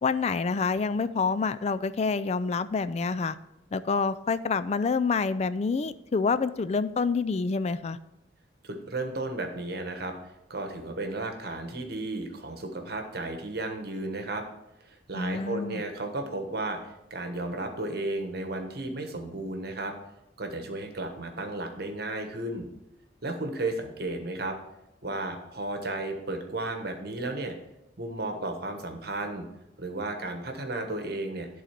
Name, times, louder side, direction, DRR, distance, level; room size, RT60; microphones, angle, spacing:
voice 1, 0.0-3.4 3.7-8.0 15.1-15.8, left 4 dB, 35° left, 14 dB, 0.3 m, -27 dB
voice 2, 8.6-14.4 14.8-19.9 20.4-22.7 23.2-24.6 25.0-27.5 28.0-29.4 29.8-31.5, right 2 dB, 55° right, 4 dB, 1.2 m, -34 dB
11.0 x 4.0 x 5.8 m, 0.93 s
head